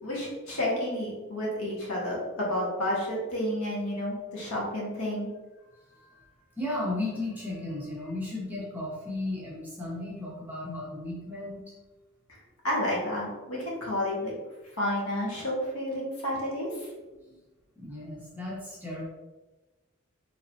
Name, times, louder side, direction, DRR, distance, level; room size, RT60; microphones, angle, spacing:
voice 1, 0.0-5.3 12.3-14.3 14.8-16.9, left 1 dB, 90° left, -4 dB, 1.3 m, -31 dB
voice 2, 5.6-11.6 14.8-14.9 17.2-17.4 17.8-19.1, left 2 dB, 10° right, -6 dB, 0.8 m, -35 dB
4.4 x 3.0 x 2.7 m, 1.2 s
head